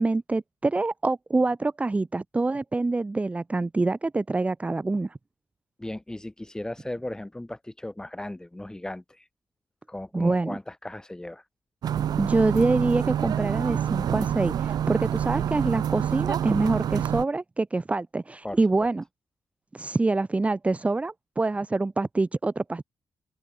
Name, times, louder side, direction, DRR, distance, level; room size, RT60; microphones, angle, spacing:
voice 1, 0.0-5.1 10.1-10.6 12.2-19.0 19.7-22.8, right 3 dB, 20° right, 1.2 m, -25 dB
voice 2, 5.8-9.2 9.9-11.4 18.4-18.9, left 1 dB, 10° left, 5.7 m, -37 dB
sound 1, 11.8-17.3, right 9 dB, 75° right, 0.6 m, -27 dB
open air
wide cardioid pair, 140°, 7 cm